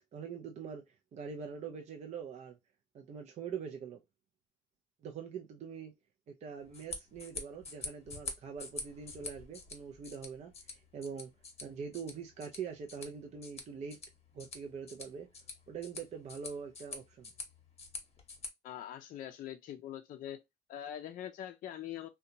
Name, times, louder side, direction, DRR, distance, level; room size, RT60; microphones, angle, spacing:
voice 1, 0.1-2.6 2.9-4.0 5.0-5.9 6.3-11.3 11.6-14.0 14.3-15.3 15.7-17.3, right 6 dB, 40° right, 0.4 m, -43 dB
sound 1, 6.6-18.5, left 4 dB, 40° left, 0.8 m, -47 dB
voice 2, 18.6-20.4 20.7-22.1, left 11 dB, 55° left, 0.4 m, -43 dB
2.7 x 2.2 x 2.6 m
cardioid pair, 110°, 17 cm